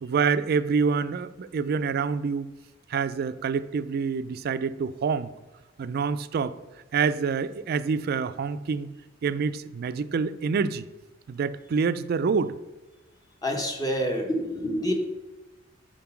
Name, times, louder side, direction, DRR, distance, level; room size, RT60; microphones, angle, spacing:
voice 1, 0.0-2.5 2.9-5.3 5.8-6.6 6.9-8.9 9.2-10.9 11.3-12.5, right 5 dB, 50° right, 14 dB, 0.3 m, -26 dB
voice 2, 13.4-14.9, equal, 20° left, 3 dB, 1.0 m, -27 dB
6.7 x 3.7 x 5.7 m, 1.1 s
head